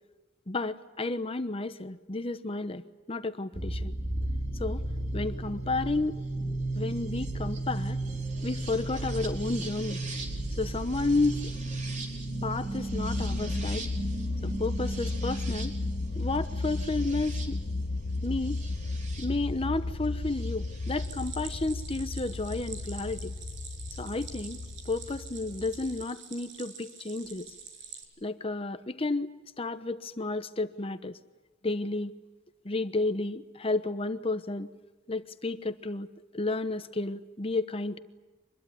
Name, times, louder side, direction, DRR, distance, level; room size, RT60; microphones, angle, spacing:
voice 1, 0.5-2.8 3.1-3.9 4.6-4.9 5.1-6.2 6.7-8.0 8.4-10.0 10.6-11.5 12.4-13.9 14.4-15.8 16.2-17.6 18.2-18.6 19.2-23.3 24.0-24.6 24.8-27.5 28.2-31.2 31.6-32.1 32.6-34.7 35.1-36.1 36.3-38.0, left 2 dB, 30° left, 11 dB, 1.0 m, -32 dB
sound 1, 3.5-19.3 20.4-21.1, right 2 dB, 40° right, 4.1 m, -35 dB
sound 2, 12.9-26.0, left 2 dB, 85° left, 0.8 m, -34 dB
Stream, 21.0-28.0, right 6 dB, 75° right, 6.1 m, -46 dB
25.5 x 21.5 x 9.3 m, 1.2 s
head